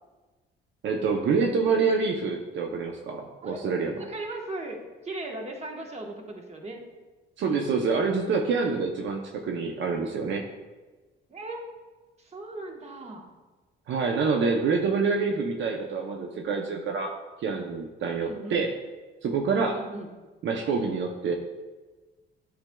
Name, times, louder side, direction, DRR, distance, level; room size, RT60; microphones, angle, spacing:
voice 1, 0.8-4.0 7.4-10.5 13.9-17.1 17.4-18.7 19.2-19.8 20.4-21.3, right 4 dB, 70° right, 2 dB, 0.7 m, -26 dB
voice 2, 3.9-6.8 11.3-11.6 12.2-13.2 18.2-18.6 19.7-20.1, right 2 dB, 35° right, 2 dB, 1.1 m, -38 dB
8.9 x 5.0 x 2.2 m, 1.3 s
cardioid pair, 90°, 20 cm